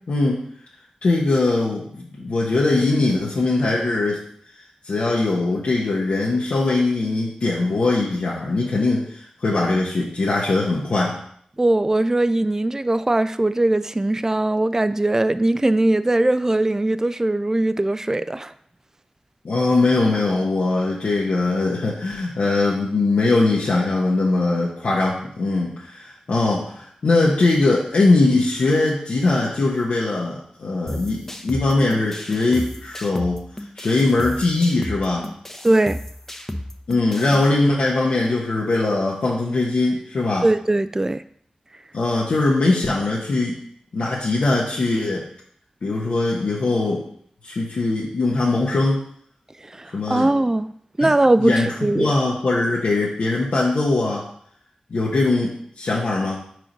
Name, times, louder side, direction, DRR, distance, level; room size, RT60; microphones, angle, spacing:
voice 1, 0.1-0.4 1.0-4.2 4.8-11.2 19.4-33.4 33.8-35.3 36.9-40.4 41.9-43.5 43.9-45.2 45.8-47.0 47.4-49.0 49.9-50.3 51.0-51.1 51.4-51.7 52.0-54.3 54.9-56.4, left 2 dB, 80° left, -4 dB, 1.1 m, -21 dB
voice 2, 11.6-18.5 35.6-36.0 40.4-41.2 49.6-50.7 51.0-52.1, right 2 dB, 20° right, 13 dB, 0.3 m, -20 dB
sound 1, 30.9-37.4, left 1 dB, 15° left, 0.8 m, -34 dB
4.7 x 4.6 x 5.2 m, 0.64 s
cardioid pair, 45°, 2 cm